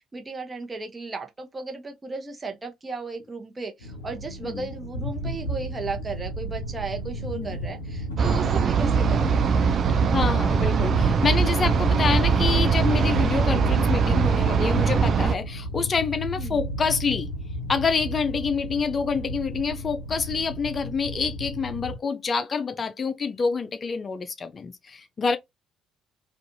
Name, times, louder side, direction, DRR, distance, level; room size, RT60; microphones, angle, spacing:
voice 1, 0.0-9.5 16.4-16.6, right 4 dB, 25° right, 0.8 m, -35 dB
sound 1, 3.8-22.0, equal, 90° left, 0.5 m, -33 dB
sound 2, 8.2-15.3, right 6 dB, 50° right, 0.4 m, -21 dB
voice 2, 10.1-17.3 17.7-25.4, left 5 dB, 40° left, 0.4 m, -27 dB
2.5 x 2.4 x 2.7 m
figure-of-eight pair, 50°, 0 cm